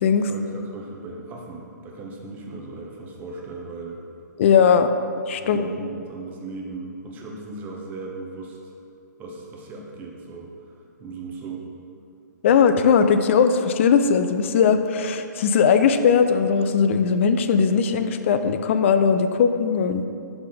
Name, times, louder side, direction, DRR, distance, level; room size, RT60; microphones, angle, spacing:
voice 1, 0.2-4.0 5.3-8.7 9.2-10.5 11.0-11.7, right 3 dB, 15° right, -1 dB, 0.8 m, -37 dB
voice 2, 4.4-4.9 5.3-5.7 12.4-20.1, left 6 dB, 40° left, 9 dB, 0.3 m, -19 dB
5.8 x 3.7 x 5.2 m, 2.6 s
figure-of-eight pair, 130°, 10 cm